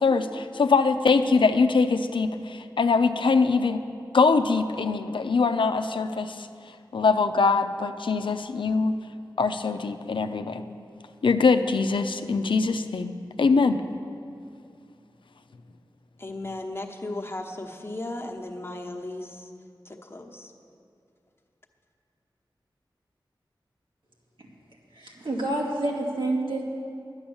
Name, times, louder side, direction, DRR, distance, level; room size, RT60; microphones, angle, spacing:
voice 1, 0.0-3.8 4.1-6.5 6.9-8.9 9.4-10.6 11.2-13.1 13.4-13.8, left 4 dB, 80° left, 8 dB, 0.5 m, -23 dB
voice 2, 16.2-19.5 19.8-20.5, left 2 dB, 30° left, 2 dB, 1.1 m, -36 dB
voice 3, 24.9-26.6, right 2 dB, 75° right, -3 dB, 2.3 m, -28 dB
10.5 x 10.0 x 7.1 m, 2.5 s
wide cardioid pair, 75°, 8 cm